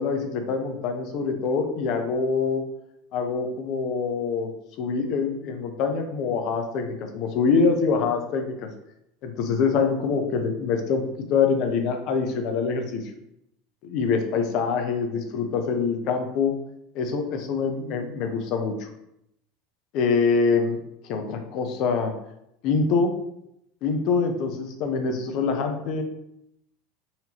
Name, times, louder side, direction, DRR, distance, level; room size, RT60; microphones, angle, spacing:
voice 1, 0.0-2.6 3.1-4.5 4.8-8.7 9.2-11.0 11.3-13.0 13.8-16.5 16.9-18.9 19.9-22.1 22.6-23.1 23.8-26.0, left 5 dB, 60° left, 5 dB, 0.6 m, -25 dB
4.2 x 2.7 x 2.9 m, 0.79 s
hypercardioid pair, 90°, 0 cm